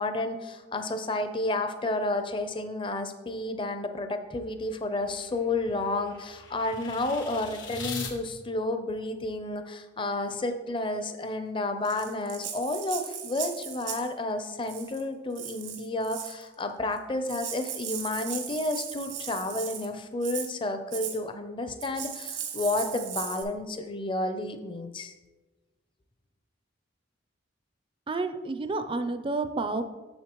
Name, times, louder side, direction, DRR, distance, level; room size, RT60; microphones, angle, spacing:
voice 1, 0.0-25.1, left 2 dB, 25° left, 8 dB, 0.5 m, -31 dB
sound 1, 4.5-8.1, left 4 dB, 80° left, 1.2 m, -41 dB
Rattle (instrument), 11.8-14.1 14.6-15.0 15.3-16.4 17.0-17.1 17.2-19.9 20.2-20.5 20.9-21.2 21.8-23.4, right 8 dB, 80° right, 1.1 m, -37 dB
voice 2, 28.1-29.8, right 3 dB, 25° right, 10 dB, 0.4 m, -30 dB
7.3 x 7.0 x 3.0 m, 1.2 s
head